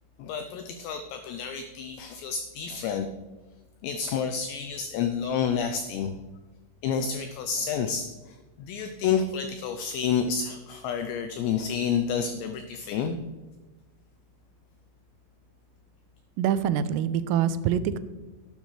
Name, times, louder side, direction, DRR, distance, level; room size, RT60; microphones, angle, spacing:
voice 1, 0.2-3.1 3.8-6.1 6.8-13.2, left 7 dB, 85° left, 7 dB, 2.5 m, -29 dB
voice 2, 16.4-18.0, right 9 dB, 90° right, 13 dB, 3.2 m, -25 dB
12.0 x 10.5 x 3.2 m, 1.2 s
omnidirectional pair, 5.7 m